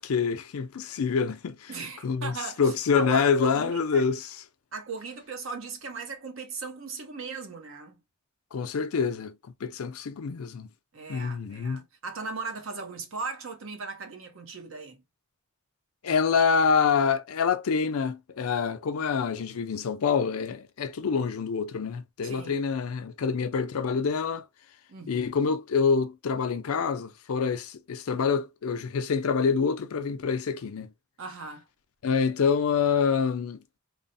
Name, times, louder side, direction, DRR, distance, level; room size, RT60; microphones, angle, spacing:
voice 1, 0.0-1.8 2.0-4.4 8.5-10.7 11.1-11.8 16.0-24.5 25.1-30.9 32.0-33.6, left 5 dB, 80° left, 0.5 m, -26 dB
voice 2, 1.7-4.0 4.7-8.0 10.9-15.0 22.2-22.6 24.9-25.3 31.2-31.6, right 4 dB, 65° right, 0.7 m, -38 dB
3.1 x 2.0 x 2.5 m
head